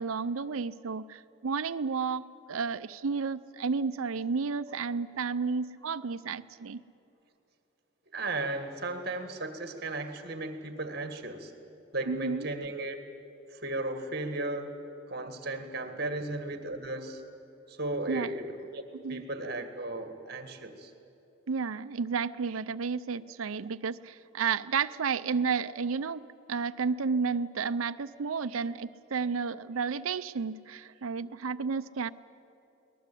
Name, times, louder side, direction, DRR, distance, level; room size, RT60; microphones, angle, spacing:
voice 1, 0.0-6.8 12.1-12.5 18.1-18.3 19.0-19.2 21.5-32.1, right 5 dB, 85° right, 13 dB, 0.6 m, -32 dB
voice 2, 8.1-11.5 11.9-13.0 13.5-14.8 15.1-17.2 17.7-18.8 19.1-20.9, right 2 dB, 50° right, 8 dB, 1.8 m, -35 dB
22.5 x 19.5 x 8.4 m, 2.9 s
head